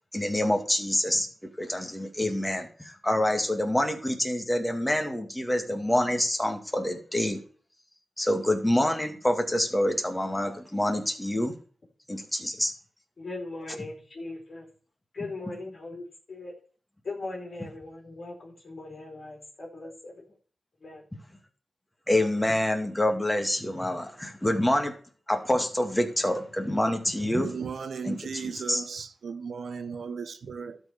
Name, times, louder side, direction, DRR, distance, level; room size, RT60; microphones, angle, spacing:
voice 1, 0.1-1.3 1.6-7.4 8.2-11.5 12.1-12.7 22.1-24.9 25.3-27.5 28.0-28.8, left 1 dB, 10° left, 2.2 m, -26 dB
voice 2, 13.2-14.7 15.1-16.5 17.0-20.2 20.8-21.0, left 2 dB, 60° left, 3.1 m, -39 dB
voice 3, 27.4-30.8, right 5 dB, 80° right, 1.1 m, -36 dB
12.5 x 4.8 x 6.7 m
cardioid pair, 70°, 0 cm